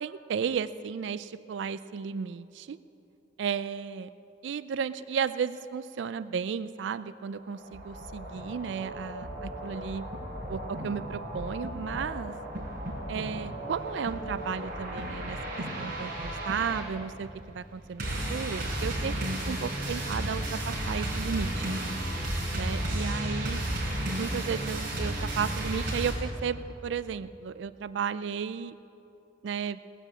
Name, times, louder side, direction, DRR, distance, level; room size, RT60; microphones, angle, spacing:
voice 1, 0.0-2.8 3.4-4.1 4.4-10.1 10.5-12.3 13.1-18.0 18.3-21.7 22.5-23.6 24.2-28.7 29.4-29.8, right 6 dB, 70° right, 14 dB, 0.4 m, -34 dB
sound 1, 7.4-26.1, right 1 dB, 50° right, 4.4 m, -34 dB
18.0 x 10.0 x 7.6 m, 2.9 s
head